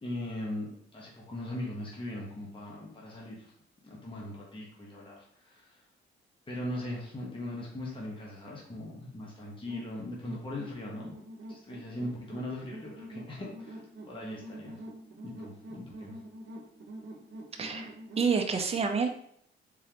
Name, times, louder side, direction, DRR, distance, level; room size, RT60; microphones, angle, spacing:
voice 1, 0.0-3.5 3.8-5.8 6.5-11.2 11.5-14.8 15.2-16.2, left 1 dB, 25° left, -3 dB, 1.2 m, -40 dB
sound 1, 9.7-18.3, right 1 dB, 55° right, 1.0 m, -46 dB
voice 2, 17.6-19.1, right 5 dB, 30° right, 4 dB, 0.6 m, -29 dB
3.8 x 3.1 x 3.0 m, 0.68 s
cardioid pair, 80°, 21 cm